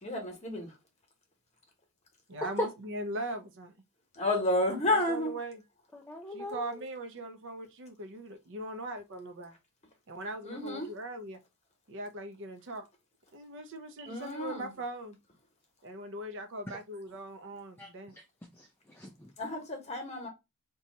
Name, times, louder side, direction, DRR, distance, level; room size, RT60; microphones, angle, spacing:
voice 1, 0.0-0.7 4.1-5.3 10.4-10.9 14.1-14.7 19.4-20.3, left 1 dB, 30° left, 1.0 m, -31 dB
voice 2, 2.3-3.7 4.9-5.6 6.3-9.5 10.1-11.4 11.9-12.9 13.3-15.2 15.8-18.2, right 1 dB, 60° right, 0.6 m, -40 dB
voice 3, 5.9-6.8 17.8-17.9 18.5-19.3, left 1 dB, 10° left, 0.3 m, -38 dB
2.8 x 2.3 x 4.0 m
head